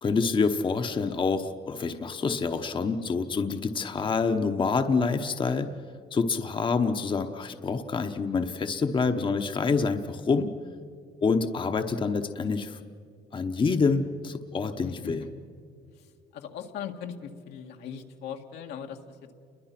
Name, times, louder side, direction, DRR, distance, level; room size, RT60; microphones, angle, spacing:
voice 1, 0.0-5.7 6.1-10.5 11.2-12.8 13.3-15.2, left 4 dB, 30° left, 7 dB, 1.0 m, -27 dB
voice 2, 14.8-15.3 15.9-19.3, left 8 dB, 80° left, 3 dB, 2.0 m, -40 dB
29.5 x 22.5 x 6.0 m, 2.4 s
cardioid pair, 110°, 17 cm